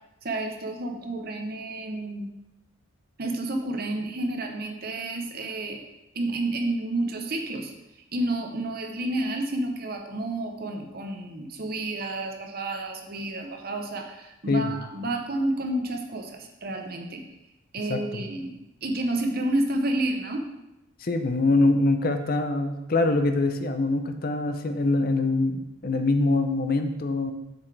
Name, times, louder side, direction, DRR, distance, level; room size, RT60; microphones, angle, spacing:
voice 1, 0.2-2.3 3.2-5.8 6.1-7.7 8.1-17.2 17.7-20.4, right 1 dB, 45° right, 3 dB, 0.8 m, -30 dB
voice 2, 14.5-14.8 17.9-18.2 21.0-27.3, left 2 dB, 45° left, 7 dB, 0.5 m, -24 dB
7.1 x 6.8 x 3.3 m, 0.94 s
head